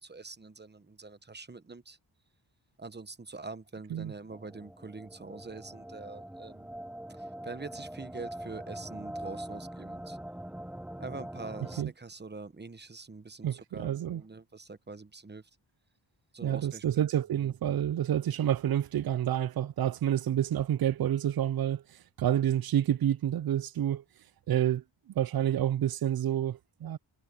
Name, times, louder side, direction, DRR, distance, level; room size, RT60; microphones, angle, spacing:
voice 1, 0.0-2.0 2.8-6.7 7.2-10.2 11.0-15.5 16.3-17.1 17.4-17.5, right 3 dB, 25° right, 1.0 m, -44 dB
sound 1, 4.3-11.8, right 1 dB, 5° right, 0.6 m, -43 dB
voice 2, 13.4-14.2 16.4-21.8 22.2-24.0 24.5-24.8 25.2-27.0, right 11 dB, 55° right, 0.5 m, -28 dB
wide cardioid pair, 115°, 44 cm